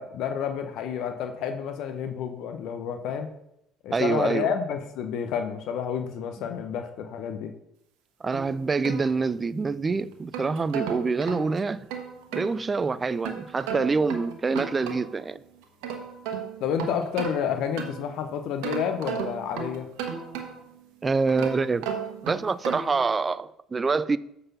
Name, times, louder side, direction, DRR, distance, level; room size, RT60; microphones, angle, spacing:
voice 1, 0.0-3.3 3.8-7.5 16.6-19.9, left 8 dB, 65° left, 0.7 m, -30 dB
voice 2, 3.9-4.5 8.2-11.8 12.3-15.4 21.0-21.9 22.2-24.2, right 4 dB, 30° right, 0.4 m, -26 dB
sound 1, 8.3-9.7 10.1-12.5 13.2-15.3 15.6-18.2 18.6-20.8 21.3-23.0, right 7 dB, 75° right, 1.1 m, -35 dB
7.6 x 4.1 x 5.6 m
hypercardioid pair, 60°, 0 cm